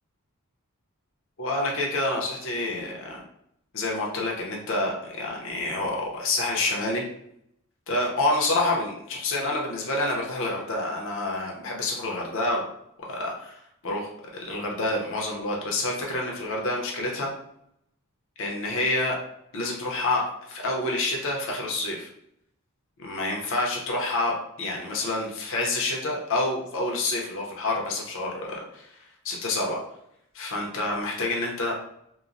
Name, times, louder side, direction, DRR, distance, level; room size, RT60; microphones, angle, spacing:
voice 1, 1.4-3.2 3.7-7.0 7.9-12.7 13.1-17.3 18.4-19.2 19.5-22.1 23.0-28.9 29.2-29.8 30.3-31.8, left 2 dB, 60° left, -1 dB, 0.7 m, -28 dB
3.0 x 2.1 x 2.5 m, 0.76 s
head